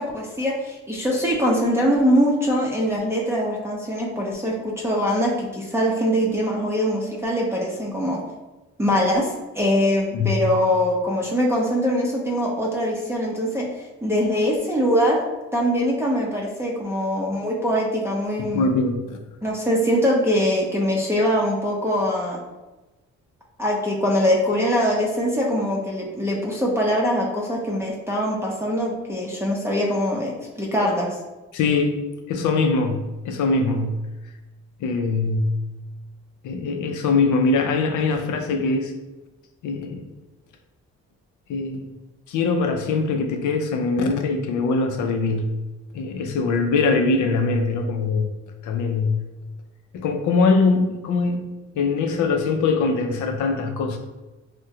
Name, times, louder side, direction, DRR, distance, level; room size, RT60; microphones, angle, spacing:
voice 1, 0.0-8.2 8.8-13.7 14.0-18.7 19.4-22.4 23.6-31.1, equal, 10° right, -4 dB, 0.6 m, -22 dB
voice 2, 10.1-10.4 18.4-19.2 31.5-32.0 32.3-34.0 34.8-35.6 36.4-38.9 39.6-40.0 41.5-41.8 42.3-45.6 45.9-48.3 48.6-49.2 49.9-51.5 51.7-54.0, left 3 dB, 80° left, 5 dB, 0.5 m, -22 dB
3.5 x 2.1 x 2.8 m, 1.1 s
cardioid pair, 75°, 30 cm